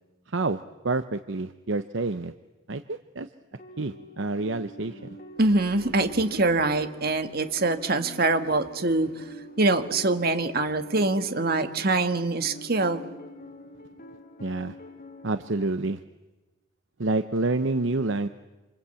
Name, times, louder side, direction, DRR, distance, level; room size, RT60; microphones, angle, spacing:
voice 1, 0.3-2.3 2.7-3.3 3.8-5.0 14.4-14.7 15.2-16.0 17.0-18.3, right 3 dB, 65° right, 10 dB, 0.8 m, -28 dB
sound 1, 3.5-15.7, equal, 45° left, 2.8 m, -45 dB
voice 2, 5.4-9.2 9.6-13.0, right 2 dB, 50° right, 8 dB, 1.7 m, -24 dB
27.0 x 26.5 x 8.3 m, 1.1 s
head